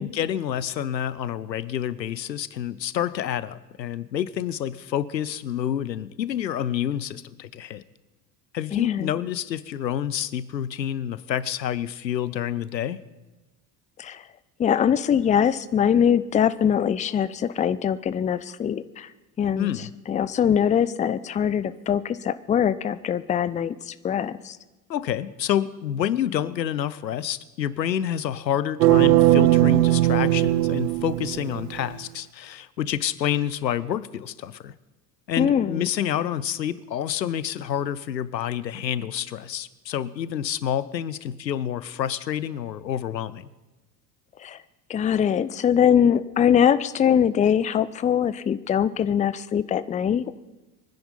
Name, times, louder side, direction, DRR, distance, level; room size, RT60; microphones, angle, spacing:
voice 1, 0.0-7.8 8.5-13.0 19.6-19.9 24.9-34.7 35.3-43.5, left 10 dB, 85° left, 17 dB, 0.7 m, -28 dB
voice 2, 8.7-9.1 14.0-14.2 14.6-19.1 19.4-19.7 20.1-24.6 35.4-35.9 44.4-44.6 44.9-50.3, left 8 dB, 15° left, 16 dB, 0.5 m, -22 dB
sound 1, 28.8-31.9, right 15 dB, 75° right, 0.6 m, -19 dB
24.0 x 10.0 x 5.2 m, 1.1 s
figure-of-eight pair, 65°, 49 cm